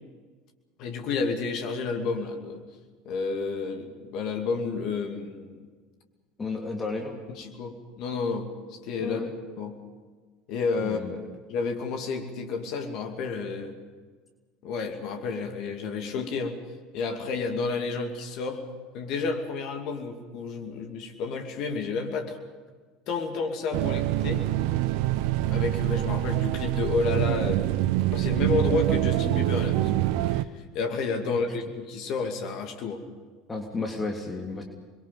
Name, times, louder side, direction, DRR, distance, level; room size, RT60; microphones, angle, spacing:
voice 1, 0.8-2.6 3.0-5.6 7.4-8.5 8.8-9.2 9.6-9.7 10.5-11.0 11.5-13.7 14.6-16.6 16.9-18.6 18.9-22.4 23.1-24.4 25.5-27.6 28.1-30.5 30.7-33.0, left 4 dB, 50° left, 4 dB, 2.6 m, -30 dB
voice 2, 6.4-7.2 9.0-9.3 10.8-11.2 31.2-31.4 33.5-34.6, left 3 dB, 20° left, 1 dB, 3.2 m, -32 dB
sound 1, 23.7-30.4, right 15 dB, 55° right, 0.8 m, -25 dB
28.5 x 22.5 x 5.5 m, 1.5 s
figure-of-eight pair, 70°, 0 cm